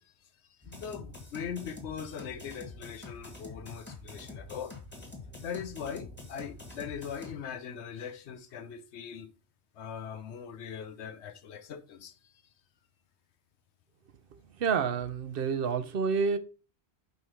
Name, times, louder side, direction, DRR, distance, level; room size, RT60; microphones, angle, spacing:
voice 1, 0.0-4.8 5.4-9.3 9.7-12.5, left 7 dB, 85° left, 1.0 m, -41 dB
sound 1, 0.6-7.3, left 3 dB, 10° left, 1.6 m, -46 dB
voice 2, 14.6-16.4, right 5 dB, 60° right, 0.8 m, -28 dB
5.6 x 4.8 x 4.3 m
omnidirectional pair, 1.1 m